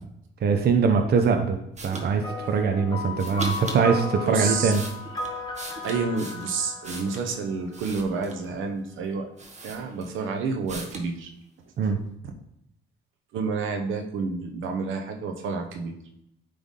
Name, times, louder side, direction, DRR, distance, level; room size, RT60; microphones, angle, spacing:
voice 1, 0.4-1.6 1.8-4.8 11.8-12.0, right 5 dB, 55° right, 5 dB, 0.8 m, -22 dB
sound 1, 1.8-2.1 3.2-3.8 4.4-7.3 7.7-8.5 9.0-9.1 9.4-10.3 10.7-11.1, right 2 dB, 35° right, 1.3 m, -39 dB
sound 2, 2.2-8.0, left 3 dB, 20° left, 1.3 m, -35 dB
voice 2, 4.2-4.7 5.8-9.2 9.6-11.3 13.3-15.9, right 4 dB, 80° right, 4 dB, 1.0 m, -29 dB
9.5 x 3.5 x 3.7 m, 0.78 s
cardioid pair, 90°, 20 cm